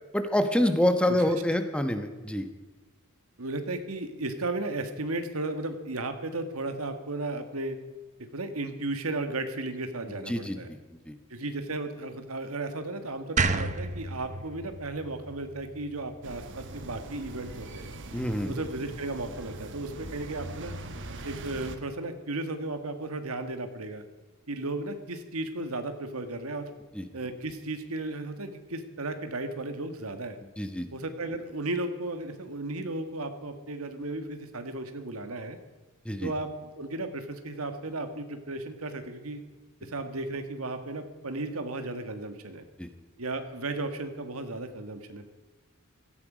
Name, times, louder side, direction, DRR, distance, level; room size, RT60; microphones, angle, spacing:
voice 1, 0.1-2.5 10.1-10.8 11.1-11.2 18.1-18.5 26.9-27.0 30.6-30.9 36.0-36.3 42.8-42.9, left 1 dB, 5° left, 7 dB, 1.2 m, -27 dB
voice 2, 3.4-7.8 8.3-10.7 11.3-17.9 18.5-20.8 21.2-24.0 24.5-26.7 27.1-30.4 30.9-35.6 36.2-39.4 39.8-42.6 43.2-45.3, right 2 dB, 80° right, 8 dB, 1.6 m, -35 dB
sound 1, 13.4-16.5, right 3 dB, 35° right, 0.8 m, -31 dB
sound 2, 16.2-21.8, right 2 dB, 60° right, 1.3 m, -42 dB
16.5 x 14.5 x 5.0 m, 1.2 s
head